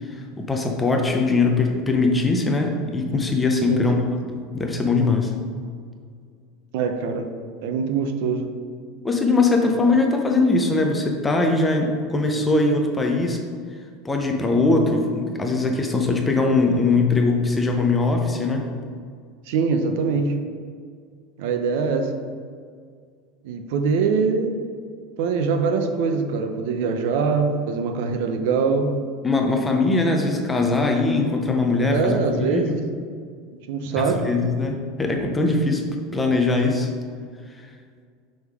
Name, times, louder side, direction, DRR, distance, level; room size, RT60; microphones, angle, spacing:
voice 1, 0.0-4.0 4.3-5.3 9.0-13.4 14.0-18.7 29.2-32.8 34.0-35.8 36.1-36.9, left 3 dB, 10° left, 2 dB, 0.5 m, -21 dB
voice 2, 6.7-7.3 7.6-8.5 19.5-20.3 21.4-22.1 23.4-24.6 25.2-28.9 31.9-32.8 33.7-34.3, right 5 dB, 65° right, 6 dB, 0.6 m, -23 dB
6.4 x 3.6 x 4.7 m, 2.1 s
supercardioid pair, 165°, 0 cm